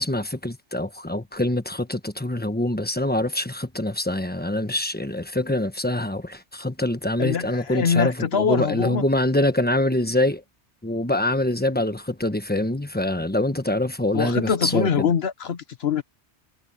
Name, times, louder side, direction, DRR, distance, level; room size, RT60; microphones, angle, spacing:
voice 1, 0.0-10.4 10.8-15.1, left 1 dB, 10° left, 1.1 m, -25 dB
voice 2, 7.2-9.0 14.1-16.0, left 6 dB, 65° left, 1.1 m, -24 dB
omnidirectional pair, 1.2 m